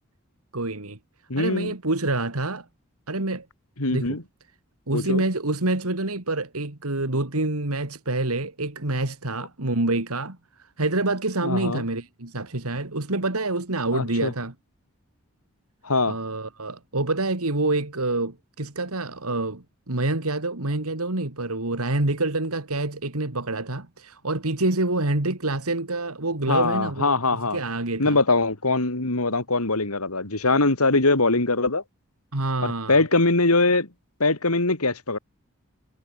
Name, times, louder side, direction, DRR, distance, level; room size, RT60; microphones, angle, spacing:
voice 1, 0.5-1.0 1.3-2.7 3.1-3.5 3.9-4.2 4.9-14.5 16.1-27.1 27.5-28.2 32.3-33.0, right 2 dB, 85° right, 2.5 m, -27 dB
voice 2, 1.3-1.7 3.8-4.2 4.9-5.2 11.4-11.8 13.9-14.3 15.8-16.2 26.5-27.6 28.0-31.8 32.6-33.9 34.2-35.2, left 3 dB, 85° left, 3.3 m, -22 dB
head